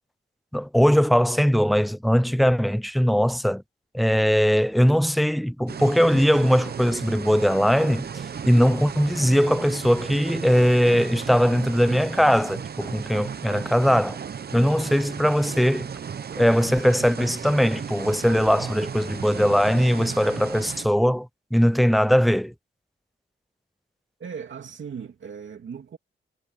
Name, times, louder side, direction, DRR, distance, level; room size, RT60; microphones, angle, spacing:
voice 1, 0.5-3.6 3.9-14.2 14.5-15.9 16.4-22.5, equal, ahead, 0.4 m, -20 dB
sound 1, 5.7-20.9, right 7 dB, 55° right, 0.8 m, -35 dB
voice 2, 24.2-26.0, right 6 dB, 75° right, 2.7 m, -38 dB
wide cardioid pair, 110°, 20 cm